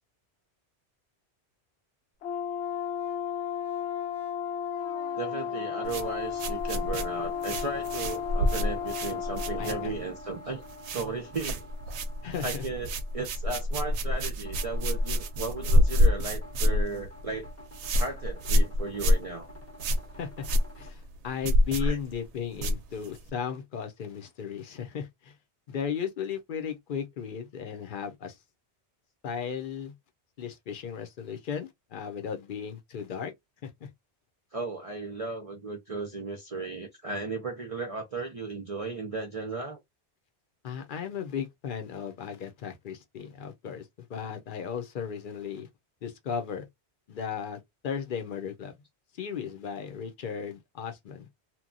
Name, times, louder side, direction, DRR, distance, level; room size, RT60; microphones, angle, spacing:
Brass instrument, 2.2-9.9, left 8 dB, 90° left, 0.9 m, -34 dB
sound 1, 2.6-20.9, left 1 dB, 15° left, 0.6 m, -48 dB
voice 1, 5.2-10.6 10.9-11.7 12.4-17.5 18.0-19.5 21.8-22.0 34.5-39.8, right 3 dB, 40° right, 0.5 m, -35 dB
sound 2, 5.8-10.2 10.5-11.1 11.3-23.3, left 1 dB, 85° right, 0.9 m, -27 dB
voice 2, 9.6-10.0 12.2-12.6 20.1-20.5 20.8-25.3 25.7-28.4 29.2-29.9 30.4-33.3 33.6-33.9 40.6-45.7 46.0-46.7 47.1-48.8 49.2-51.3, left 7 dB, 60° left, 0.7 m, -36 dB
2.9 x 2.2 x 2.5 m
omnidirectional pair, 1.1 m